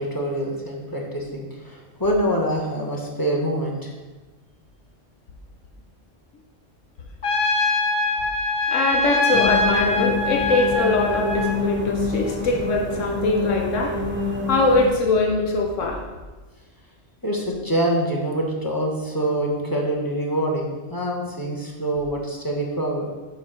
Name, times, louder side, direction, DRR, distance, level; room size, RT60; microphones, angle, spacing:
voice 1, 0.0-3.9 17.2-23.1, right 1 dB, 15° left, -1 dB, 1.3 m, -25 dB
Trumpet, 7.2-11.6, left 2 dB, 55° left, 1.0 m, -23 dB
voice 2, 8.7-13.9 14.5-16.0, left 3 dB, 80° left, 1 dB, 1.3 m, -22 dB
sound 1, 9.3-14.9, left 3 dB, 10° right, 0.8 m, -27 dB
7.4 x 4.1 x 6.1 m, 1.2 s
omnidirectional pair, 1.3 m